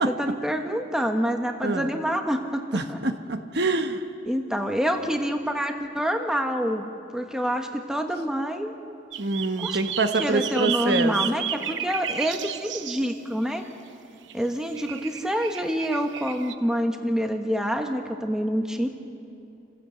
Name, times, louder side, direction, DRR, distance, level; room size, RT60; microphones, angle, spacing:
voice 1, 0.1-3.0 4.3-6.9 7.1-8.7 9.6-9.8 10.2-13.6 14.3-18.9, equal, 5° right, 4 dB, 1.2 m, -27 dB
voice 2, 2.7-4.0 9.2-11.1, right 3 dB, 55° right, 7 dB, 1.2 m, -26 dB
sound 1, 9.1-13.1 14.3-14.4 14.7-16.5, right 9 dB, 70° right, 0.9 m, -33 dB
29.5 x 16.0 x 8.0 m, 2.7 s
head